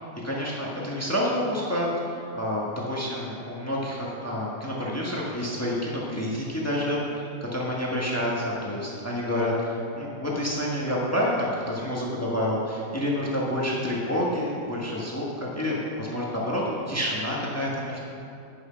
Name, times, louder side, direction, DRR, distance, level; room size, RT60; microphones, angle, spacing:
voice 1, 0.2-16.6 16.9-18.0, left 1 dB, 10° left, -4 dB, 1.4 m, -28 dB
11.0 x 6.3 x 5.7 m, 2.6 s
omnidirectional pair, 1.8 m